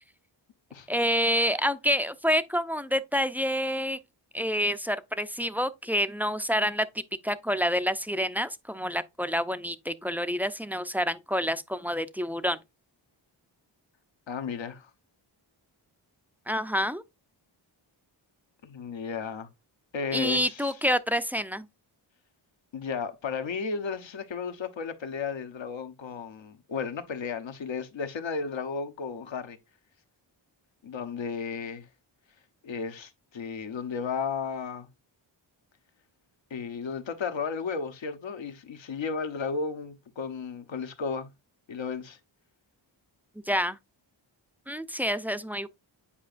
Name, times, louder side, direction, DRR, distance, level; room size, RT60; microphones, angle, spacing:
voice 1, 0.9-4.0 4.3-12.6 16.5-17.0 20.1-21.7 43.5-43.8 44.7-45.7, equal, 5° right, 0.5 m, -28 dB
voice 2, 14.3-14.9 18.6-19.5 19.9-20.7 22.7-29.6 30.8-31.8 32.6-34.9 36.5-41.3 41.7-42.2, left 5 dB, 65° left, 1.0 m, -34 dB
8.5 x 4.8 x 2.5 m
cardioid pair, 55°, 48 cm